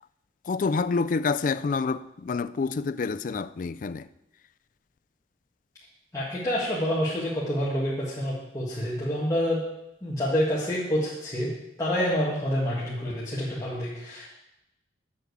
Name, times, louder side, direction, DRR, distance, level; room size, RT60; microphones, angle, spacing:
voice 1, 0.5-4.1, left 4 dB, 45° left, 0.3 m, -27 dB
voice 2, 6.1-9.6 10.0-11.5 11.8-14.3, equal, 20° left, 1.7 m, -27 dB
7.8 x 6.5 x 8.1 m
head